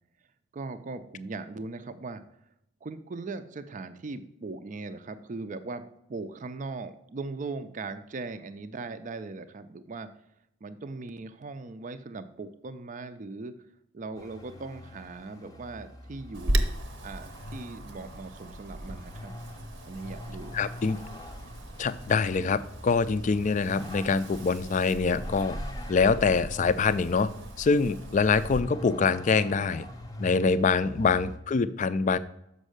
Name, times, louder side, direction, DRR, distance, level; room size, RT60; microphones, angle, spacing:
voice 1, 0.5-2.2 2.8-10.1 10.6-13.5 13.9-16.7 17.0-19.3 19.8-20.6 30.2-30.4, right 3 dB, 40° right, 10 dB, 0.4 m, -39 dB
Vehicle, 14.2-31.4, left 1 dB, 20° left, 0.8 m, -45 dB
Wind, 16.3-28.6, right 1 dB, 70° right, 0.8 m, -37 dB
voice 2, 20.5-21.0 21.8-25.5 25.9-27.3 27.6-29.9 30.2-32.2, left 4 dB, 40° left, 14 dB, 0.4 m, -25 dB
6.4 x 5.4 x 6.4 m, 0.78 s
head